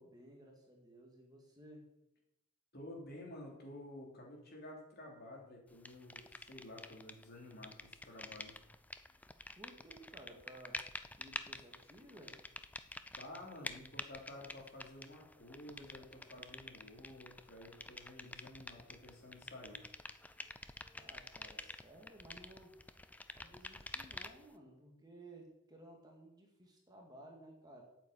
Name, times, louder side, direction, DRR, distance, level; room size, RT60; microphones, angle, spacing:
voice 1, 0.0-1.8 9.6-10.8 11.2-12.4 20.9-22.8 23.3-27.8, right 1 dB, 20° right, 0 dB, 2.1 m, -57 dB
voice 2, 2.7-8.6 13.2-19.8, left 1 dB, 50° left, -1 dB, 3.4 m, -52 dB
sound 1, 5.9-7.3 7.5-24.5, left 2 dB, 10° left, 0.4 m, -49 dB
9.0 x 7.4 x 8.3 m, 0.85 s
head